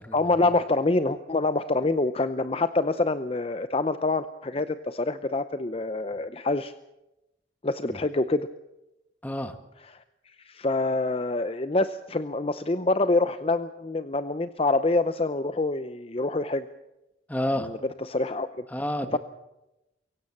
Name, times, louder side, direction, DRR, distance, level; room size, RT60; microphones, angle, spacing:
voice 1, 0.1-6.7 7.6-8.5 10.5-16.7 18.1-18.5 19.1-19.2, left 2 dB, 30° left, 12 dB, 0.7 m, -26 dB
voice 2, 9.2-9.6 17.3-17.7 18.7-19.2, left 1 dB, 10° left, 9 dB, 1.5 m, -30 dB
23.0 x 17.5 x 7.3 m, 0.92 s
head